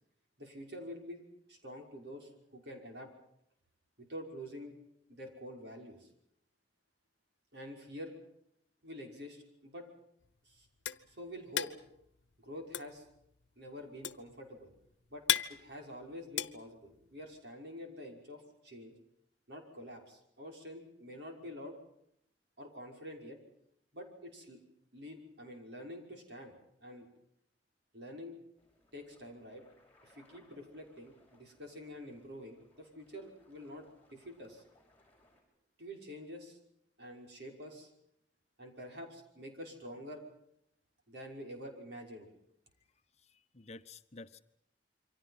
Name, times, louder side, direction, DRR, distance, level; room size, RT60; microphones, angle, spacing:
voice 1, 0.4-1.2 1.5-3.1 4.0-4.7 5.2-6.1 7.5-8.1 8.8-9.8 10.4-10.7 11.0-11.7 12.4-13.1 13.6-14.7 15.1-15.2 15.5-18.9 19.5-21.7 22.6-23.4 23.9-24.6 24.9-26.5 26.8-27.1 27.9-28.4 28.9-29.6 30.0-33.8 34.1-34.6 35.8-36.6 37.0-37.9 38.6-40.2 41.1-42.3, equal, 70° right, 2 dB, 5.8 m, -47 dB
sound 1, 10.2-17.4, left 11 dB, 85° left, 1.0 m, -37 dB
sound 2, 28.6-35.4, left 1 dB, 10° left, 7.0 m, -68 dB
voice 2, 43.2-44.4, left 3 dB, 35° left, 9 dB, 1.0 m, -51 dB
28.0 x 24.5 x 5.8 m, 0.73 s
head